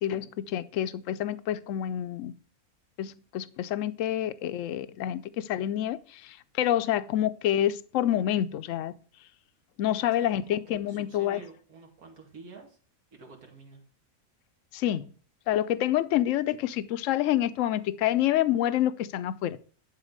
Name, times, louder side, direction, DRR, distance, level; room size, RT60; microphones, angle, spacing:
voice 1, 0.0-2.3 3.0-8.9 9.8-11.4 14.7-15.1 15.5-19.6, left 12 dB, 65° left, 0.9 m, -28 dB
voice 2, 10.2-10.6 10.9-12.8 13.1-13.8, right 4 dB, 80° right, 2.5 m, -49 dB
11.5 x 4.3 x 6.5 m
omnidirectional pair, 1.6 m